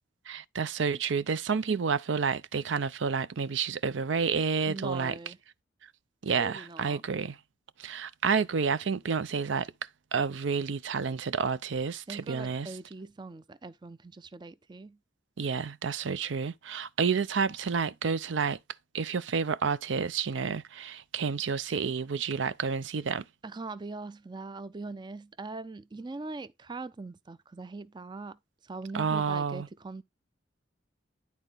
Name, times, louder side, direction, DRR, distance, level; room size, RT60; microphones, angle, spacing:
voice 1, 0.3-5.1 6.2-7.4 7.8-9.7 10.1-12.7 15.4-18.6 18.9-23.2 28.9-29.7, right 5 dB, 80° right, 0.5 m, -30 dB
voice 2, 4.7-5.4 6.4-7.0 12.1-15.0 23.4-30.0, right 3 dB, 25° right, 0.4 m, -41 dB
11.0 x 4.1 x 3.9 m
head